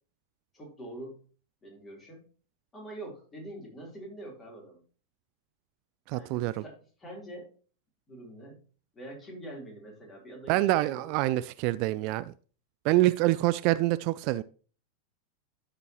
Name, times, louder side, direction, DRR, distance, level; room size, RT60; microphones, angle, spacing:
voice 1, 0.5-1.2 1.6-2.3 2.7-4.8 6.1-7.5 8.1-8.6 8.9-11.1, right 1 dB, 20° left, -1 dB, 3.7 m, -45 dB
voice 2, 6.1-6.6 10.5-12.3 12.8-14.4, right 17 dB, 45° right, 15 dB, 0.3 m, -26 dB
14.0 x 5.0 x 3.0 m, 0.39 s
figure-of-eight pair, 90°, 0 cm